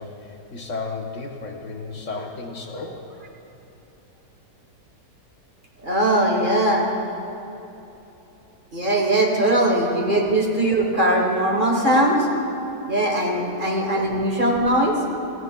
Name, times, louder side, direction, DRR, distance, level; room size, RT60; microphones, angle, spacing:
voice 1, 0.0-3.0 9.5-9.6 10.1-10.2 13.3-13.5 13.9-14.0, left 3 dB, 55° left, 2 dB, 1.0 m, -34 dB
voice 2, 5.8-6.9 8.7-12.3 12.9-15.0, right 1 dB, 30° right, 0 dB, 1.3 m, -20 dB
17.5 x 14.5 x 2.2 m, 3.0 s
omnidirectional pair, 1.9 m